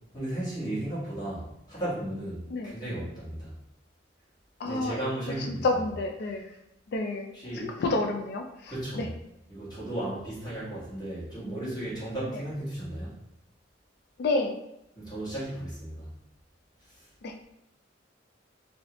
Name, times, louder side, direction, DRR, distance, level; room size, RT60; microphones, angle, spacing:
voice 1, 0.1-3.5 4.6-5.8 7.3-7.7 8.7-9.1 9.5-13.1 14.9-16.1 16.9-17.1, right 1 dB, 20° left, -9 dB, 1.5 m, -35 dB
voice 2, 4.6-5.0 5.4-6.5 6.9-9.1 14.2-14.6 17.2-17.3, left 2 dB, 60° left, 3 dB, 0.4 m, -30 dB
3.1 x 2.7 x 2.9 m, 0.84 s
head